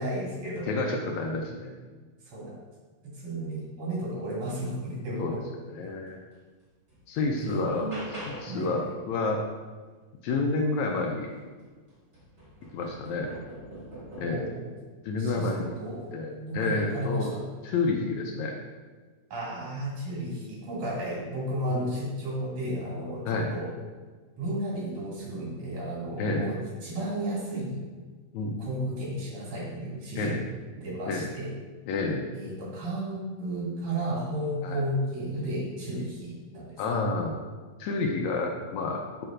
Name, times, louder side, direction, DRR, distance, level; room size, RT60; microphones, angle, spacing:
voice 1, 0.0-0.7 2.3-2.6 3.0-5.4 7.4-8.1 8.4-8.9 14.2-14.8 15.2-17.4 19.3-23.7 24.4-26.6 26.8-27.8 28.6-30.3 30.7-31.5 32.3-36.8, right 1 dB, 75° right, -6 dB, 3.7 m, -33 dB
voice 2, 0.7-1.7 5.2-5.4 5.7-6.2 7.1-7.9 8.3-9.4 10.2-11.3 12.7-13.3 14.2-14.5 15.0-15.7 16.1-17.3 17.6-18.5 21.7-21.9 23.3-23.5 26.2-26.5 28.3-28.6 30.2-30.4 31.1-31.3 31.9-32.3 34.6-34.8 36.8-37.4 37.8-39.2, left 3 dB, 80° left, 1 dB, 1.8 m, -29 dB
sound 1, 6.3-6.4 6.9-8.7 11.1-11.2 11.6-14.6 15.3-15.8 16.9-17.1, right 1 dB, 30° right, 1.3 m, -44 dB
10.5 x 4.3 x 2.5 m, 1.4 s
omnidirectional pair, 3.6 m